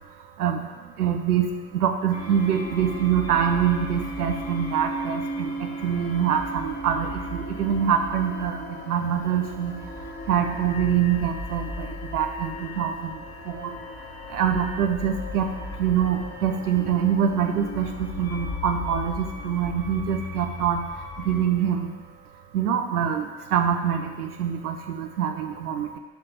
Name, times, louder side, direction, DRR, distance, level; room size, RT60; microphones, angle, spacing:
voice 1, 1.0-1.5 1.7-8.6 8.9-9.7 10.3-13.1 13.5-13.7 14.3-15.5 15.8-17.9 18.2-20.8 21.3-21.9 22.5-26.0, right 8 dB, 80° right, 5 dB, 0.8 m, -25 dB
sound 1, 2.1-21.4, left 1 dB, 35° left, 2.2 m, -36 dB
10.0 x 5.1 x 5.7 m, 1.2 s
figure-of-eight pair, 55°, 45 cm